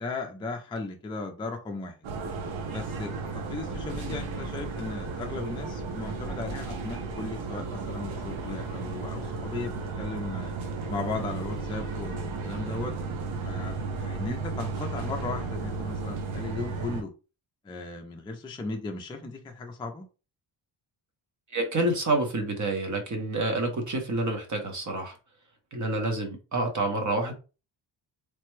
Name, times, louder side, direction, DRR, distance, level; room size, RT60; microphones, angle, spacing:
voice 1, 0.0-2.0 2.7-3.1 3.5-10.5 10.9-12.9 13.4-13.7 14.0-17.1 17.6-20.1, left 3 dB, 10° left, 3 dB, 0.3 m, -36 dB
sound 1, 2.0-17.0, right 4 dB, 80° right, 0.8 m, -34 dB
voice 2, 21.5-25.2 25.7-27.3, right 2 dB, 40° right, 4 dB, 0.8 m, -28 dB
3.3 x 2.1 x 3.1 m, 0.32 s
wide cardioid pair, 140°, 47 cm